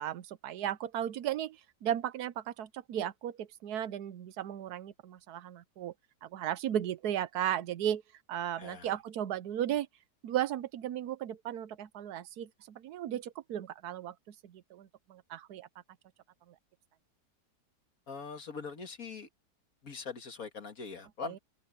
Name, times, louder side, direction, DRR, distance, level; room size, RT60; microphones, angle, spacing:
voice 1, 0.0-5.9 6.2-8.0 8.3-9.9 10.2-15.7 21.2-21.4, right 11 dB, 65° right, 1.2 m, -35 dB
voice 2, 8.6-8.9 18.1-19.3 19.8-21.4, left 5 dB, 50° left, 2.1 m, -42 dB
omnidirectional pair, 1.9 m